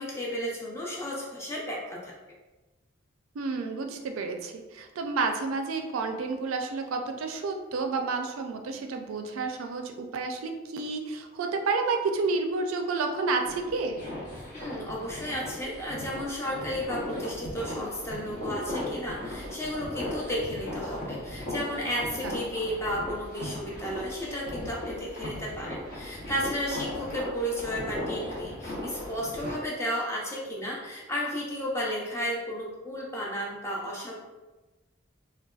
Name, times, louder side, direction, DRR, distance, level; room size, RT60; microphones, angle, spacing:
voice 1, 0.0-2.1 14.5-34.2, equal, 15° left, -4 dB, 0.5 m, -33 dB
voice 2, 3.4-14.0 22.2-22.4, right 4 dB, 90° right, 5 dB, 0.4 m, -30 dB
sound 1, 13.4-29.5, left 1 dB, 40° left, 0.8 m, -37 dB
3.9 x 2.2 x 2.3 m, 1.2 s
head